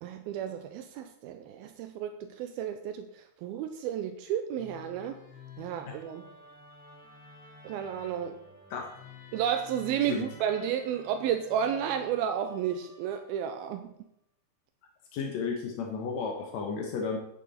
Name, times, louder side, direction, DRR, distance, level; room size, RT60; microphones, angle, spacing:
voice 1, 0.0-5.2 5.6-6.3 7.6-8.4 9.3-13.9, right 9 dB, 85° right, 7 dB, 2.2 m, -32 dB
Musical instrument, 4.5-13.7, left 4 dB, 5° right, 0.6 m, -52 dB
voice 2, 15.1-17.2, left 5 dB, 80° left, 1 dB, 1.6 m, -33 dB
11.0 x 9.8 x 4.3 m, 0.74 s
omnidirectional pair, 5.0 m